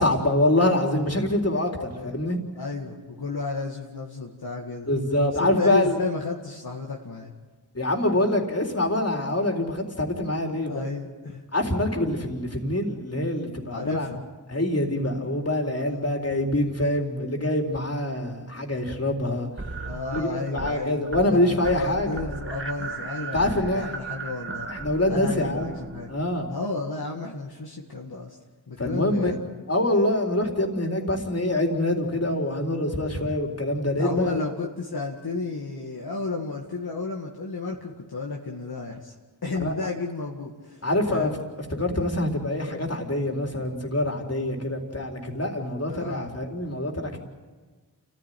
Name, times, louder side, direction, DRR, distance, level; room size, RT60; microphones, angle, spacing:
voice 1, 0.0-2.4 4.9-6.0 7.7-10.8 11.5-14.1 14.5-19.5 20.1-22.4 23.3-23.9 24.7-25.7 26.1-26.5 28.8-29.3 29.7-34.4 39.6-39.7 40.8-41.3 41.8-47.2, left 1 dB, 35° left, 2 dB, 4.0 m, -25 dB
voice 2, 1.9-2.3 2.6-4.9 5.4-7.3 10.7-11.4 13.7-14.2 15.9-16.1 19.9-24.7 25.1-26.1 26.5-28.4 28.7-29.4 34.0-39.2 39.4-40.8 41.1-41.4 45.9-46.4, left 3 dB, 60° left, -1 dB, 2.2 m, -32 dB
sound 1, 19.6-20.8 21.1-21.4 21.6-26.4, right 4 dB, 30° right, 1.7 m, -36 dB
28.5 x 15.0 x 9.4 m, 1.4 s
cardioid pair, 45°, 42 cm